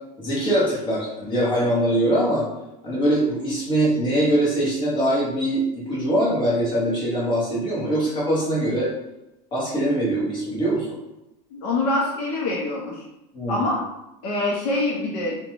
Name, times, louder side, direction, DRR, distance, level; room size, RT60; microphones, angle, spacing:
voice 1, 0.2-2.5 2.8-8.9 9.5-10.9 13.3-13.7, right 1 dB, 20° left, -6 dB, 0.9 m, -22 dB
voice 2, 11.5-13.0 13.5-13.8 14.2-15.4, left 2 dB, 65° left, -3 dB, 0.6 m, -25 dB
2.5 x 2.2 x 3.0 m, 0.91 s
supercardioid pair, 165°, 21 cm